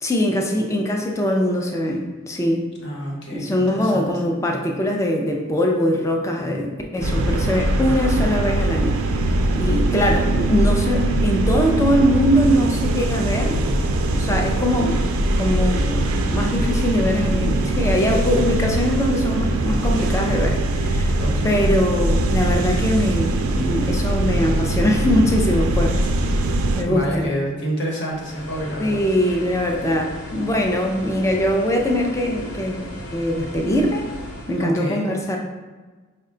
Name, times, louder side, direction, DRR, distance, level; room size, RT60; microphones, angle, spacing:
voice 1, 0.0-2.6 3.3-9.0 9.6-13.6 14.1-15.0 15.4-21.1 21.4-26.5 26.7-27.3 28.8-34.0 34.5-35.4, equal, 15° left, 1 dB, 0.4 m, -22 dB
voice 2, 2.8-4.1 21.2-21.6 26.8-29.0 34.6-35.1, equal, 55° left, -2 dB, 1.0 m, -28 dB
sound 1, 7.0-26.8, right 1 dB, 85° right, 0.4 m, -21 dB
sound 2, 28.1-34.6, left 1 dB, 85° left, 0.9 m, -36 dB
5.4 x 2.2 x 3.7 m, 1.3 s
head